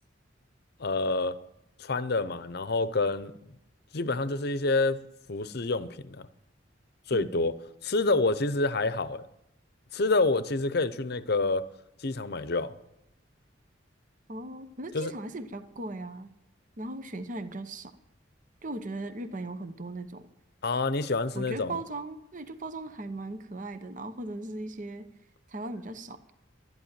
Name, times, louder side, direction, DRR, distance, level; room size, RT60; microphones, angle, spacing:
voice 1, 0.8-1.4 1.8-3.3 3.9-5.0 5.3-6.3 7.1-7.5 7.8-9.3 9.9-11.7 12.0-12.7 14.9-15.1 20.6-21.8, left 3 dB, 55° left, 0.8 m, -27 dB
voice 2, 14.3-16.3 16.8-17.9 18.6-20.3 21.3-25.1 25.5-26.3, right 2 dB, 40° right, 0.9 m, -38 dB
12.5 x 11.5 x 8.9 m
head